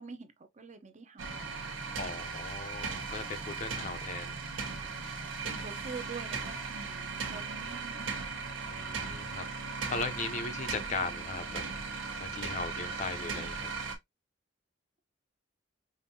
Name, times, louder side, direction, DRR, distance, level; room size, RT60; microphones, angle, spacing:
voice 1, 0.0-1.8 4.8-8.2, right 4 dB, 40° right, 0.7 m, -46 dB
sound 1, 1.2-14.0, right 4 dB, 75° right, 1.1 m, -38 dB
voice 2, 2.0-4.3 8.7-9.5 9.9-13.7, left 3 dB, 40° left, 0.6 m, -38 dB
5.1 x 2.6 x 2.7 m
head